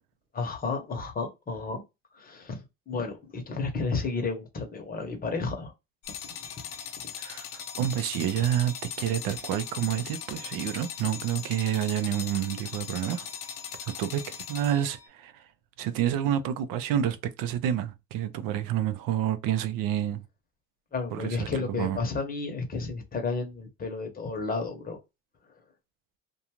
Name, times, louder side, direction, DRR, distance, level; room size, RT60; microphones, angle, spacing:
voice 1, 0.3-1.8 2.1-5.7 6.1-6.5 20.9-25.0, left 4 dB, 25° left, 0.8 m, -32 dB
sound 1, 6.0-15.1, left 8 dB, 70° left, 0.7 m, -39 dB
voice 2, 7.2-13.3 13.8-15.4 15.8-20.2 21.1-22.0, right 10 dB, 80° right, 0.6 m, -29 dB
2.5 x 2.3 x 2.9 m
cardioid pair, 130°, 33 cm